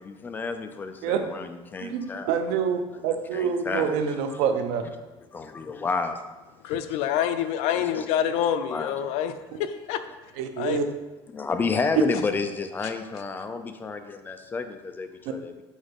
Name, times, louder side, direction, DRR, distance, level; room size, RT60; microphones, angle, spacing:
voice 1, 0.0-2.3 3.3-4.4 5.3-6.2 7.7-8.1 8.7-8.9 10.7-10.8 11.3-15.5, left 4 dB, 15° left, 7 dB, 0.4 m, -31 dB
voice 2, 1.8-4.8 10.4-10.8 12.0-12.1, right 7 dB, 90° right, 7 dB, 0.7 m, -26 dB
voice 3, 6.6-9.3 9.6-10.0 10.6-10.8 12.8-12.9, left 9 dB, 75° left, 10 dB, 0.5 m, -26 dB
6.3 x 4.1 x 5.2 m, 1.1 s
cardioid pair, 170°, 11 cm